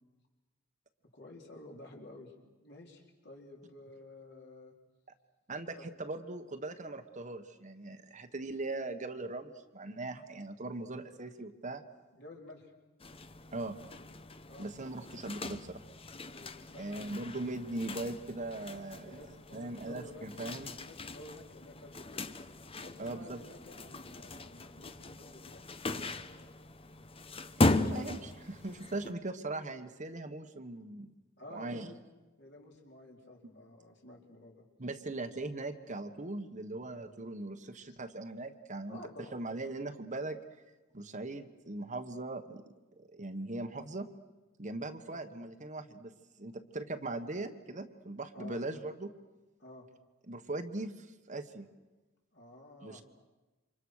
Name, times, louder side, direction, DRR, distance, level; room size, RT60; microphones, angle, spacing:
voice 1, 1.1-4.8 5.8-5.9 12.1-12.7 14.4-14.7 16.3-17.2 19.0-20.3 20.8-22.3 22.8-25.6 25.9-26.5 26.9-27.0 27.7-28.1 31.4-32.0 32.4-34.7 38.9-39.4 45.1-45.2 48.3-48.6 49.6-49.9 52.3-53.0, left 1 dB, 55° left, 0 dB, 4.5 m, -52 dB
voice 2, 5.5-11.8 13.5-13.8 14.6-15.8 16.8-19.2 19.5-20.7 23.0-23.4 27.6-31.1 31.5-31.9 34.8-39.0 39.3-40.4 40.9-42.6 43.0-44.1 44.6-46.1 46.4-49.1 50.3-51.7 52.8-53.0, right 2 dB, 35° right, 7 dB, 1.3 m, -40 dB
sound 1, 13.0-29.1, left 2 dB, 30° left, 0.9 m, -38 dB
28.5 x 26.0 x 6.5 m, 1.1 s
head